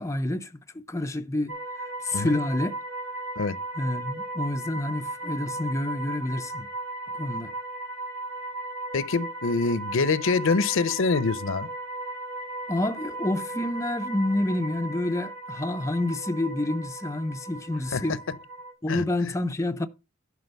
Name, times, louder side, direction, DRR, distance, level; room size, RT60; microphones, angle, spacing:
voice 1, 0.0-1.6 2.0-2.8 3.8-6.7 7.1-7.5 12.7-18.2 18.8-19.9, left 1 dB, 15° left, 0.5 m, -28 dB
sound 1, 1.5-18.7, right 2 dB, 85° right, 2.9 m, -36 dB
voice 2, 8.9-11.7 17.9-18.0 18.9-19.0, left 4 dB, 70° left, 0.6 m, -25 dB
11.5 x 4.8 x 5.2 m
head